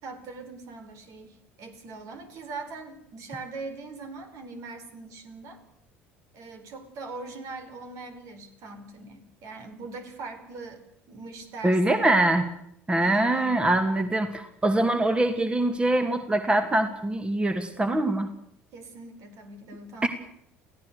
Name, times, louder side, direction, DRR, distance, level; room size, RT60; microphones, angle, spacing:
voice 1, 0.0-5.6 6.3-10.8 11.1-12.1 13.0-13.6 18.7-20.1, right 3 dB, 55° right, 7 dB, 4.3 m, -41 dB
voice 2, 11.6-12.5 12.9-18.3 20.0-20.1, right 1 dB, 15° right, 7 dB, 2.4 m, -23 dB
29.5 x 16.5 x 6.7 m, 0.72 s
figure-of-eight pair, 60°, 6 cm